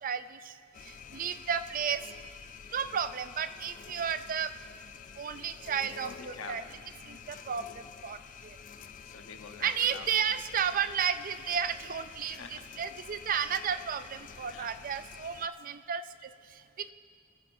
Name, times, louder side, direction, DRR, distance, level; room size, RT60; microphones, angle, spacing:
voice 1, 0.0-2.0 2.7-4.5 5.2-6.6 7.0-8.6 9.6-16.9, right 7 dB, 45° right, 11 dB, 0.4 m, -33 dB
sound 1, 0.7-15.5, left 7 dB, 40° left, 0.4 m, -49 dB
voice 2, 6.0-6.6 7.0-7.2 8.8-10.1 12.3-12.7 14.5-14.7, left 5 dB, 85° left, 5 dB, 1.1 m, -46 dB
23.5 x 13.5 x 2.7 m, 2.2 s
head